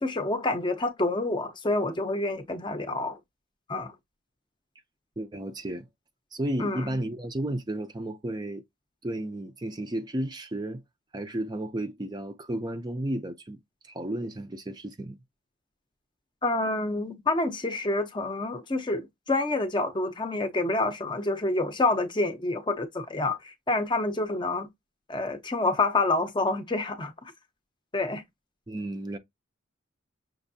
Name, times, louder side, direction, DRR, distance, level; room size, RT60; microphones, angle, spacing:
voice 1, 0.0-3.2 3.7-3.9 6.6-6.9 16.4-24.7 25.1-27.3 27.9-28.2, left 2 dB, 25° left, 0.6 m, -28 dB
voice 2, 5.2-5.9 6.3-8.6 9.0-10.8 11.1-13.6 13.8-15.2 28.7-29.2, right 1 dB, 20° right, 0.5 m, -33 dB
6.2 x 2.5 x 2.7 m
head